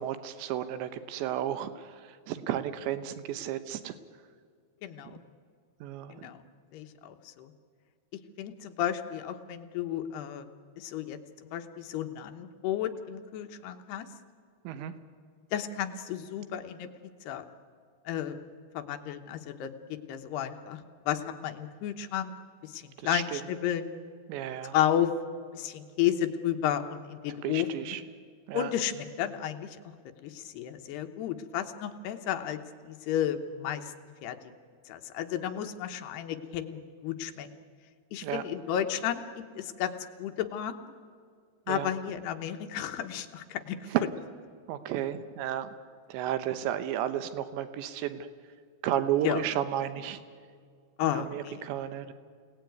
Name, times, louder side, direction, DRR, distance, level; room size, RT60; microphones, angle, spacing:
voice 1, 0.0-1.9 2.3-3.9 5.8-6.3 14.6-14.9 23.0-23.4 24.3-24.7 27.4-28.0 28.5-28.7 38.2-38.4 41.7-41.9 43.9-44.0 44.7-45.7 46.1-48.3 48.8-50.2 51.1-52.1, right 11 dB, 90° right, 11 dB, 3.3 m, -32 dB
voice 2, 4.8-5.2 6.1-6.4 6.7-7.5 8.4-10.5 10.8-14.1 15.5-16.9 17.3-17.4 18.1-18.4 18.7-20.8 21.1-22.3 22.6-23.9 24.7-25.1 25.5-28.0 28.5-29.8 30.2-32.6 32.8-33.9 34.2-34.4 34.9-37.5 38.1-40.7 41.7-43.9 49.2-49.4 51.0-51.6, left 10 dB, 75° left, 7 dB, 3.0 m, -32 dB
29.0 x 18.5 x 9.4 m, 2.1 s
omnidirectional pair, 5.0 m